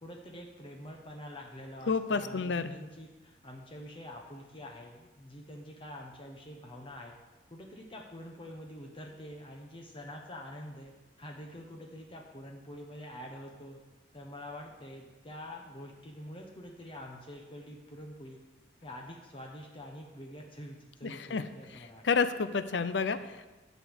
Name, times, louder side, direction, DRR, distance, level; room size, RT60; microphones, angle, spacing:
voice 1, 0.0-7.2 7.5-13.8 14.1-18.4 18.8-22.0, left 1 dB, 30° left, 0 dB, 1.0 m, -46 dB
voice 2, 1.9-2.8 21.0-21.4 22.0-23.5, left 5 dB, 80° left, 12 dB, 0.6 m, -30 dB
11.0 x 5.2 x 8.0 m, 1.1 s
head